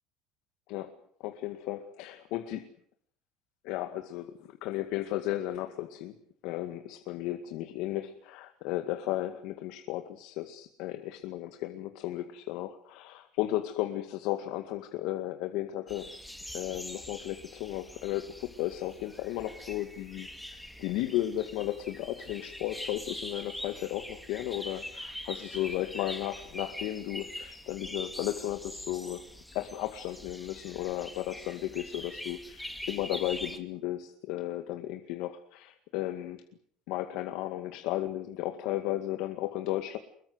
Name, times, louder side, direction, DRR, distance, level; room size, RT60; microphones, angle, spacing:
voice 1, 1.2-2.7 3.6-6.2 6.4-16.1 16.5-29.3 29.5-36.4 36.9-40.0, left 14 dB, 65° left, 7 dB, 2.1 m, -34 dB
sound 1, 15.9-33.6, left 1 dB, 5° left, 2.5 m, -43 dB
25.0 x 22.0 x 8.1 m, 0.64 s
cardioid pair, 155°, 0 cm